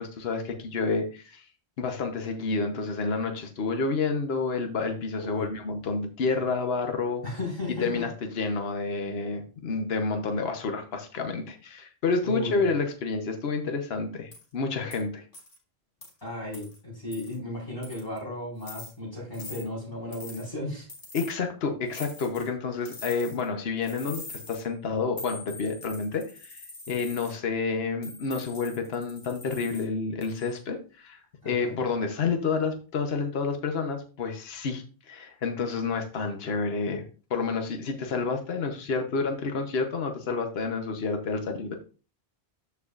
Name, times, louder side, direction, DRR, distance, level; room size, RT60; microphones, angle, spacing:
voice 1, 0.0-1.4 1.8-7.2 7.8-15.2 21.1-41.7, left 4 dB, 75° left, 5 dB, 1.2 m, -29 dB
voice 2, 5.2-5.5 7.2-8.0 12.2-12.6 16.2-20.9 31.4-31.8, left 2 dB, 25° left, -6 dB, 4.5 m, -35 dB
sound 1, 14.3-14.4 14.9-15.0 15.3-15.6 16.0-16.1 16.5-16.8 17.1-17.4 17.8-18.2 18.6-18.9 19.3-19.6 20.1-20.5 20.9-21.3 21.9-22.5 22.8-23.5 23.8-24.6 25.2-27.3 28.0-29.8 30.2-30.6, left 3 dB, 55° left, 2.2 m, -44 dB
13.5 x 4.7 x 2.4 m, 0.36 s
omnidirectional pair, 1.0 m